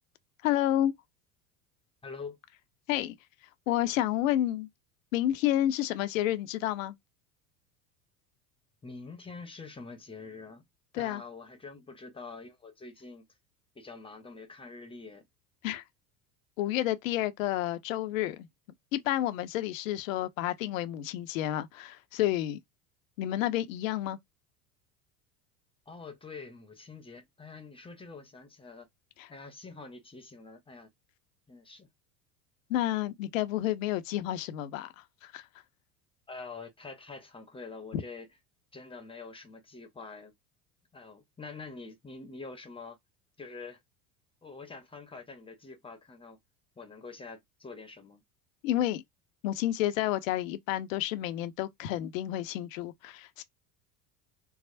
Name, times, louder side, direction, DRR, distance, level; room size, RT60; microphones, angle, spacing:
voice 1, 0.4-0.9 2.9-3.1 3.7-4.7 5.1-7.0 10.9-11.2 15.6-15.8 16.6-18.5 18.9-22.6 23.2-24.2 29.2-29.3 32.7-35.5 37.9-38.0 48.6-49.0 49.4-53.4, left 13 dB, 60° left, 0.7 m, -30 dB
voice 2, 2.0-2.4 8.8-10.6 10.9-13.3 13.7-15.3 25.9-28.9 29.3-30.9 31.5-31.9 36.3-38.3 38.7-40.3 40.9-43.0 43.4-43.8 44.4-46.4 46.8-48.2, left 4 dB, 10° left, 0.8 m, -45 dB
4.6 x 2.0 x 2.5 m
figure-of-eight pair, 75°, 44 cm